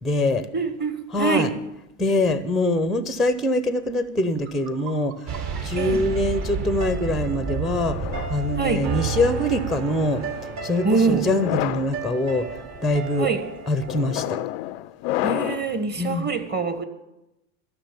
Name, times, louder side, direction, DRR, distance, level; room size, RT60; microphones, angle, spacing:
voice 1, 0.0-0.5 1.1-1.5 2.0-5.3 5.6-8.0 8.3-10.2 10.6-12.5 12.8-13.3 13.7-14.4 16.0-16.3, left 1 dB, ahead, 12 dB, 0.6 m, -23 dB
voice 2, 0.5-1.5 5.8-6.0 8.6-8.8 10.8-11.3 13.2-13.4 15.2-16.9, right 4 dB, 20° right, 9 dB, 1.3 m, -24 dB
sound 1, 3.9-4.0 4.3-7.4, right 7 dB, 75° right, 4.0 m, -46 dB
sound 2, 5.3-14.2, right 5 dB, 40° right, 1.5 m, -31 dB
sound 3, 7.8-9.3 10.0-10.4 11.2-11.9 12.6-12.9 13.9-15.7, left 15 dB, 45° left, 0.4 m, -30 dB
13.0 x 6.4 x 9.8 m, 0.93 s
hypercardioid pair, 115°, 45 cm